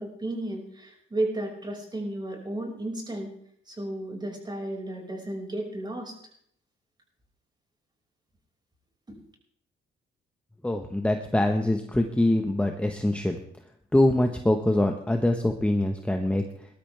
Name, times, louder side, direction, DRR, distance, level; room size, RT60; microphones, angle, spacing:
voice 1, 0.0-3.3 3.7-6.1 9.1-9.2, right 1 dB, 20° right, 0 dB, 5.7 m, -33 dB
voice 2, 10.6-13.4 13.9-16.4, left 1 dB, 5° left, 4 dB, 1.3 m, -24 dB
20.5 x 12.5 x 3.5 m, 0.64 s
cardioid pair, 90°, 20 cm